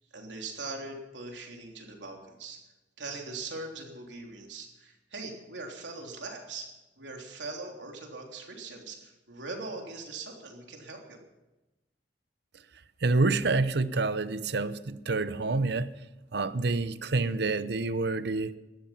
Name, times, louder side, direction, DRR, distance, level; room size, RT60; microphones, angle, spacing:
voice 1, 0.1-2.6 3.0-6.7 7.0-11.2, right 3 dB, 85° right, 3.4 m, -41 dB
voice 2, 13.0-15.9 16.3-18.5, right 3 dB, 65° right, 0.8 m, -27 dB
18.0 x 13.5 x 5.7 m
head